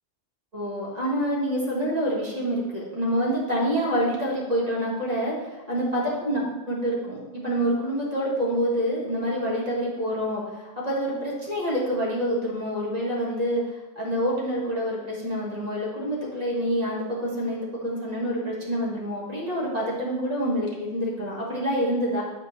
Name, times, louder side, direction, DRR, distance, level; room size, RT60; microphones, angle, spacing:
voice 1, 0.5-13.6 14.0-22.2, equal, 35° right, -5 dB, 1.7 m, -27 dB
8.0 x 4.9 x 3.2 m, 1.1 s
omnidirectional pair, 1.2 m